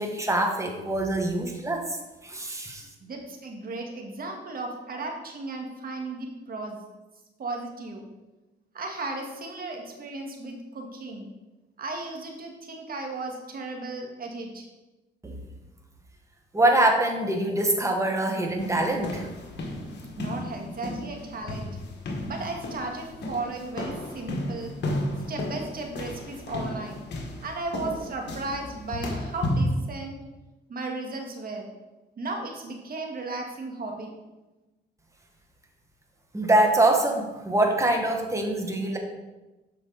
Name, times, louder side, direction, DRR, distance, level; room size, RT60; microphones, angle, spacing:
voice 1, 0.0-1.8 2.2-2.9 15.2-15.4 16.5-19.3 36.3-39.0, right 1 dB, 15° right, 2 dB, 1.5 m, -24 dB
voice 2, 3.0-6.8 7.4-8.1 8.7-11.3 11.8-14.7 20.2-21.7 22.2-24.7 25.3-27.0 27.4-30.2 30.7-31.7 32.2-34.1, right 2 dB, 50° right, 2 dB, 1.7 m, -35 dB
sound 1, 18.6-29.8, left 1 dB, 60° left, 1.6 m, -33 dB
8.0 x 5.8 x 4.0 m, 1.1 s
cardioid pair, 90°, 20 cm